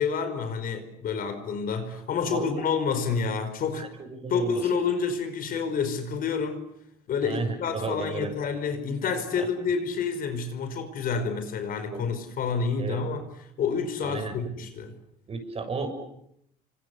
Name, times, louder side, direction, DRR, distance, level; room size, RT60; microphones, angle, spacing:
voice 1, 0.0-3.9 4.3-6.6 7.1-13.3 13.6-14.9, left 5 dB, 60° left, 5.1 m, -28 dB
voice 2, 3.7-4.6 7.2-8.3 9.3-9.5 11.9-12.1 12.8-13.0 14.0-14.3 15.3-15.9, right 4 dB, 35° right, 6.6 m, -33 dB
29.0 x 25.0 x 7.1 m
cardioid pair, 110°, 17 cm